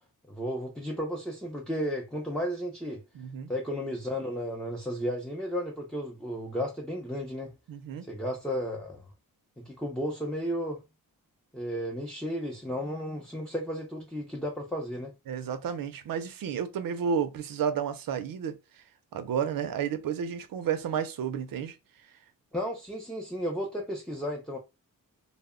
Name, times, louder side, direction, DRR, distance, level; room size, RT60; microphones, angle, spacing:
voice 1, 0.3-3.0 3.5-7.5 8.1-9.0 9.6-10.8 11.5-15.1 22.5-24.6, equal, ahead, 0.5 m, -33 dB
voice 2, 3.1-3.5 7.7-8.1 15.3-18.8 19.1-21.8, right 7 dB, 70° right, 0.6 m, -31 dB
2.0 x 2.0 x 3.6 m
wide cardioid pair, 105°, 35 cm